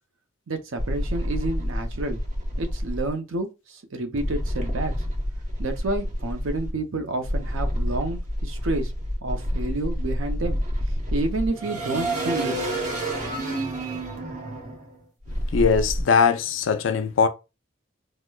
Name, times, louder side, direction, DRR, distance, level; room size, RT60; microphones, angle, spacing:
voice 1, 0.5-2.2 2.6-4.9 5.6-8.9 9.2-10.6 10.9-12.5, right 2 dB, 80° right, 0.6 m, -29 dB
sound 1, 0.8-3.1 4.2-6.7 7.2-16.0, equal, 40° right, 0.8 m, -28 dB
voice 2, 15.5-17.3, left 5 dB, 70° left, 0.4 m, -20 dB
4.7 x 2.1 x 2.3 m
head